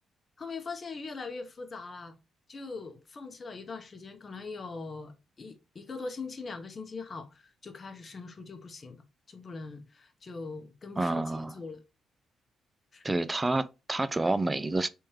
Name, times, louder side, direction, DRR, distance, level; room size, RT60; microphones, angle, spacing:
voice 1, 0.4-2.2 2.5-9.0 9.3-11.8 12.9-13.2, left 4 dB, 45° left, 0.8 m, -41 dB
voice 2, 11.0-11.5 13.0-14.9, right 2 dB, 25° right, 0.4 m, -29 dB
3.5 x 3.1 x 3.0 m
hypercardioid pair, 50°, 0 cm